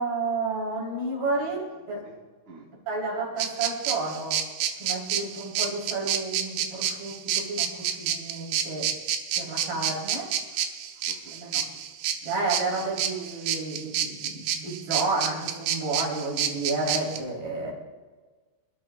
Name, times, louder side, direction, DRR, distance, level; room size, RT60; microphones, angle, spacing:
voice 1, 0.0-2.0 2.9-4.4 4.8-8.9 9.4-10.3 11.3-11.6 12.2-17.7, right 3 dB, 55° right, -4 dB, 5.2 m, -31 dB
voice 2, 1.3-2.2 2.4-2.7 5.8-6.0 9.7-11.4 12.8-13.6, right 3 dB, 20° right, -3 dB, 2.5 m, -54 dB
sound 1, 3.4-17.2, right 9 dB, 75° right, 2.6 m, -29 dB
25.0 x 12.5 x 2.4 m, 1.4 s
omnidirectional pair, 5.4 m